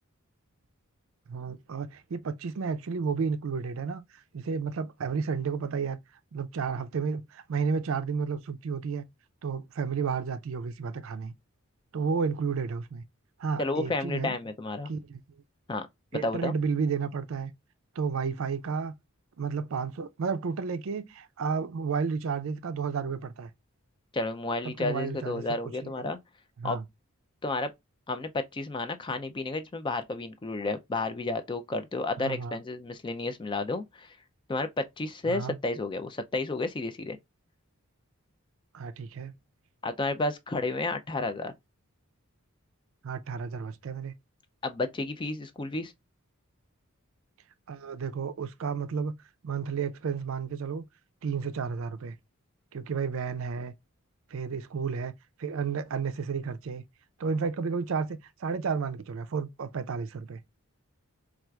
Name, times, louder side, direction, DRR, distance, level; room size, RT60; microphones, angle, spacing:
voice 1, 1.3-6.0 6.3-9.0 9.4-11.3 11.9-13.0 13.4-14.4 14.9-15.2 16.1-17.5 18.0-18.9 19.4-23.5 24.6-26.1 26.6-26.9 32.2-32.6 35.3-35.6 38.7-39.3 43.0-44.1 47.7-49.1 49.4-50.8 51.2-52.2 52.7-53.7 54.3-55.1 55.4-56.8 57.2-60.4, right 5 dB, 65° right, 0.4 m, -32 dB
voice 2, 13.6-14.9 15.7-15.9 16.1-16.5 24.1-26.2 26.6-26.8 27.4-27.7 28.1-34.2 34.5-37.2 39.8-41.5 44.6-45.9, left 2 dB, 20° left, 0.3 m, -31 dB
4.3 x 2.4 x 2.2 m
head